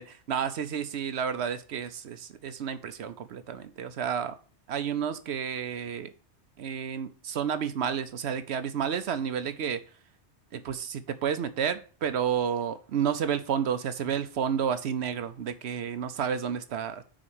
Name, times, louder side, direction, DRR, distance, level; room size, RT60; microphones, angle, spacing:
voice 1, 0.0-4.3 4.7-6.1 6.6-9.8 10.5-17.0, right 8 dB, 70° right, 0.9 m, -31 dB
6.4 x 4.2 x 6.1 m
omnidirectional pair, 1.2 m